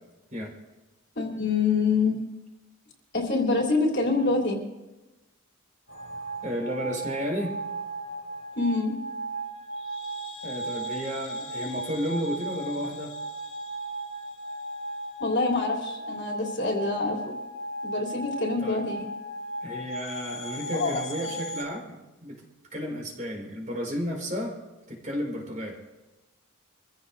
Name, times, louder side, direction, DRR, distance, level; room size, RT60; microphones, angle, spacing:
voice 1, 1.1-2.2 3.1-4.6 8.5-9.0 15.2-17.3 17.8-19.1 20.7-21.3, left 3 dB, 55° left, -2 dB, 3.2 m, -26 dB
sound 1, 5.9-21.6, right 1 dB, 85° left, 3.5 m, -36 dB
voice 2, 6.4-7.6 10.4-13.1 18.6-18.8 19.6-22.5 22.7-24.6 24.9-25.8, equal, 35° right, -1 dB, 4.6 m, -32 dB
26.5 x 15.5 x 2.6 m, 1.1 s
head